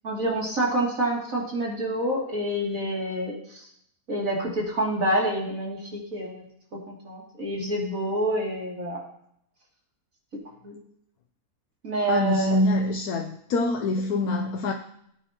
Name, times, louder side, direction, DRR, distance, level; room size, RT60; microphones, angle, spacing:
voice 1, 0.0-3.6 4.1-6.4 6.9-9.0 10.6-10.8 11.8-12.6, right 1 dB, 60° right, -3 dB, 3.3 m, -27 dB
voice 2, 12.1-14.7, left 2 dB, 80° left, 2 dB, 1.3 m, -25 dB
18.0 x 9.1 x 3.0 m, 0.72 s
omnidirectional pair, 1.6 m